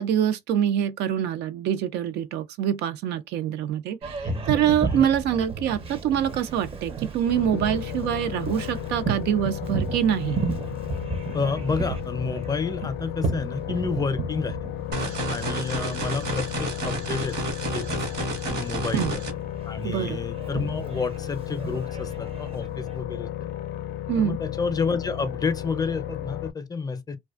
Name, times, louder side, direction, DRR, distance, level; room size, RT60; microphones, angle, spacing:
voice 1, 0.0-10.4 18.9-19.1 19.8-20.2 24.1-24.4, right 10 dB, 80° right, 0.5 m, -25 dB
Boat Water vehicle, 4.0-23.0, right 4 dB, 35° right, 0.6 m, -34 dB
sound 1, 7.3-26.5, left 12 dB, 75° left, 0.4 m, -34 dB
voice 2, 11.3-14.6 15.3-17.4 17.7-19.2 19.6-23.3 24.2-27.2, left 4 dB, 20° left, 0.5 m, -30 dB
sound 2, 14.9-19.3, right 2 dB, 65° right, 1.2 m, -31 dB
2.4 x 2.2 x 2.3 m
cardioid pair, 110°, 17 cm